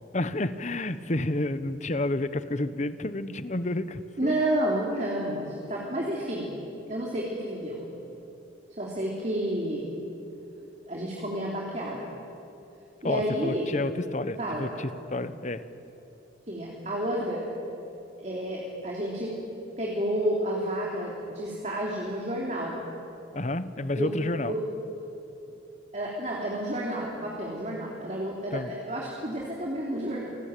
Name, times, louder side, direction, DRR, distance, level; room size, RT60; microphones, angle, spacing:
voice 1, 0.1-4.3 13.0-15.6 23.3-24.5 28.5-28.7, left 2 dB, 40° left, 13 dB, 1.0 m, -30 dB
voice 2, 4.2-6.6 6.9-7.9 8.7-9.9 10.8-12.2 13.0-13.8 14.4-14.7 16.5-17.5 18.2-19.3 19.8-22.8 24.0-24.1 24.5-24.6 25.9-30.3, right 1 dB, 35° right, -3 dB, 3.2 m, -30 dB
29.0 x 19.0 x 9.1 m, 2.9 s
head